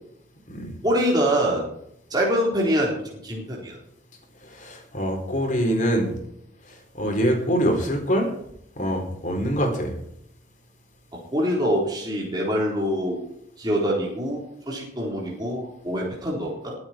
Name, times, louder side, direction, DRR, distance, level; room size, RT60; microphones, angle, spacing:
voice 1, 0.8-1.7 2.1-3.8 11.3-13.2 13.6-16.7, equal, 20° right, -3 dB, 4.0 m, -24 dB
voice 2, 4.4-6.1 6.7-8.3 8.8-9.9, equal, 40° left, 2 dB, 4.2 m, -24 dB
22.0 x 8.8 x 4.6 m, 0.72 s
head